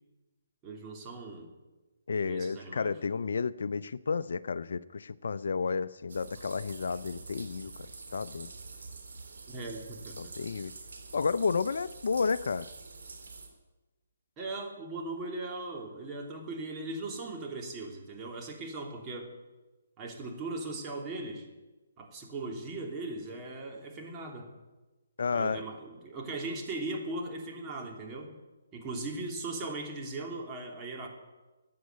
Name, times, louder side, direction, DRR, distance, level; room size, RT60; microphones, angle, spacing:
voice 1, 0.6-1.5 2.2-3.0 9.5-10.5 14.4-19.3 20.0-21.5 22.0-24.5 25.3-28.3 28.7-31.1, right 2 dB, 20° right, 1 dB, 3.0 m, -39 dB
voice 2, 2.1-7.7 8.1-8.5 10.2-10.7 11.1-12.7 25.2-25.6, left 5 dB, 70° left, 16 dB, 0.5 m, -31 dB
sound 1, 6.1-13.5, right 4 dB, 75° right, 3.5 m, -47 dB
15.0 x 9.5 x 9.3 m, 1.2 s
hypercardioid pair, 145°, 0 cm